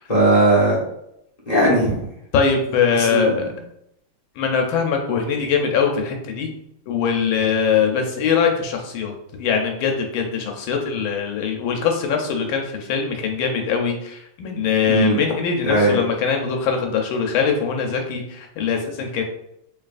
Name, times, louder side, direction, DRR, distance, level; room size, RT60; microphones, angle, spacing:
voice 1, 0.1-0.8 1.5-2.0 2.9-3.3 14.8-15.2 15.6-16.0, right 1 dB, 30° left, -7 dB, 0.7 m, -18 dB
voice 2, 2.3-3.5 4.4-6.5 6.9-9.1 9.4-19.2, left 6 dB, 75° left, 2 dB, 1.3 m, -22 dB
3.8 x 3.2 x 2.4 m, 0.77 s
omnidirectional pair, 2.4 m